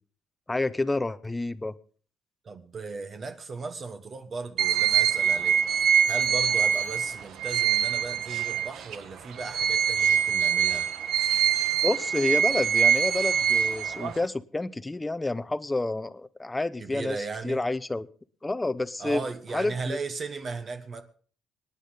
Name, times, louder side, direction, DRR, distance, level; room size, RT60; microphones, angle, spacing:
voice 1, 0.5-1.7 11.8-17.2 17.4-18.1 18.4-19.2 19.5-20.0, left 2 dB, 15° left, 15 dB, 0.8 m, -29 dB
voice 2, 2.4-5.6 6.1-10.9 16.8-17.6 19.0-21.0, right 4 dB, 40° right, 7 dB, 1.6 m, -36 dB
sound 1, 4.6-9.0 9.4-14.3, right 8 dB, 70° right, 1.2 m, -24 dB
26.0 x 9.9 x 4.0 m, 0.44 s
cardioid pair, 95°, 0 cm